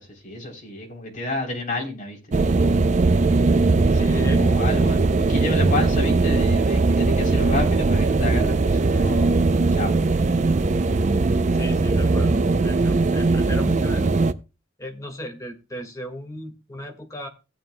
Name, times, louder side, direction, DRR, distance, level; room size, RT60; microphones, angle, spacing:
voice 1, 0.0-2.2 3.9-9.3 9.7-10.0, left 2 dB, 40° left, 3.4 m, -30 dB
sound 1, 2.3-14.3, right 3 dB, 35° right, 0.5 m, -20 dB
voice 2, 3.9-4.5 11.5-14.2 14.8-17.3, left 1 dB, 15° left, 1.8 m, -35 dB
17.0 x 9.0 x 2.2 m
head